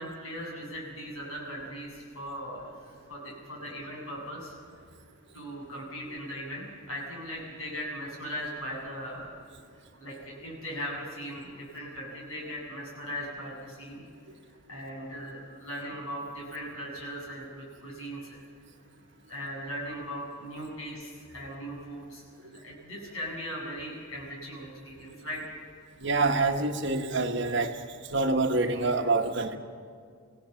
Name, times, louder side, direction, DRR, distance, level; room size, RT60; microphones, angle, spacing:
voice 1, 0.0-2.7 3.1-4.5 5.3-9.3 10.0-14.0 14.7-18.4 19.3-25.4, equal, 85° left, -2 dB, 7.5 m, -39 dB
voice 2, 26.0-27.8 28.1-29.6, right 3 dB, 55° right, 5 dB, 1.4 m, -26 dB
25.0 x 16.5 x 7.1 m, 2.2 s
head